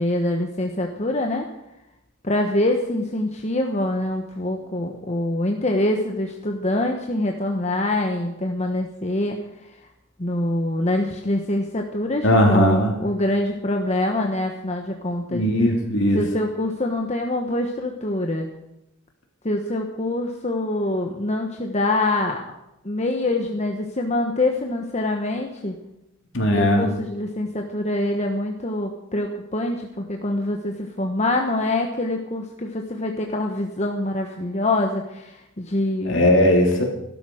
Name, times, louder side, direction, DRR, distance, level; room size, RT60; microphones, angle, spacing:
voice 1, 0.0-1.5 2.2-9.4 10.2-15.4 16.1-18.5 19.4-22.4 22.8-25.7 26.5-36.2, left 1 dB, 30° left, 2 dB, 1.2 m, -25 dB
voice 2, 12.2-12.9 15.3-16.2 26.3-26.9 36.0-36.8, left 1 dB, 60° left, 1 dB, 3.4 m, -18 dB
15.5 x 12.5 x 6.4 m, 0.88 s
head